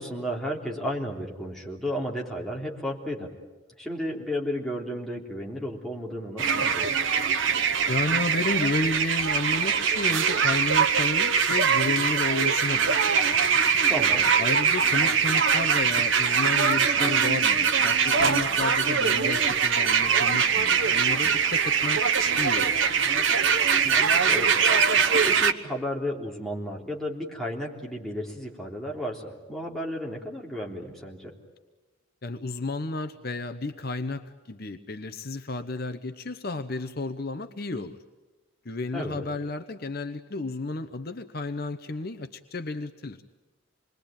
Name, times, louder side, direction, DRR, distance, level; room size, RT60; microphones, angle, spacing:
voice 1, 0.0-3.3 3.8-6.9 13.9-14.3 23.8-24.6 24.9-31.3 38.9-39.3, equal, ahead, -3 dB, 3.5 m, -33 dB
sound 1, 6.4-25.5, right 6 dB, 65° right, 1.2 m, -22 dB
voice 2, 7.9-13.6 14.4-22.0 22.4-22.7 32.2-38.0 38.6-43.2, left 2 dB, 45° left, 9 dB, 0.8 m, -32 dB
27.0 x 21.5 x 8.9 m, 1.2 s
head